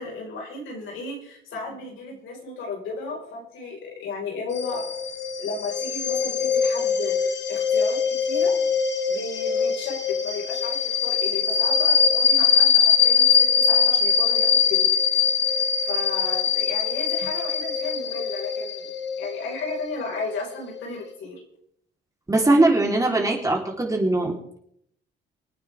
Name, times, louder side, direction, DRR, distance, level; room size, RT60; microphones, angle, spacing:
voice 1, 0.0-4.9 5.4-8.6 9.1-14.8 15.5-18.9 19.2-21.4, left 3 dB, 80° left, -1 dB, 5.6 m, -34 dB
sound 1, 4.5-20.8, left 6 dB, 60° left, 2.0 m, -22 dB
voice 2, 22.3-24.6, right 2 dB, 15° right, -1 dB, 4.2 m, -21 dB
26.0 x 9.1 x 3.8 m, 0.69 s
cardioid pair, 90°, 20 cm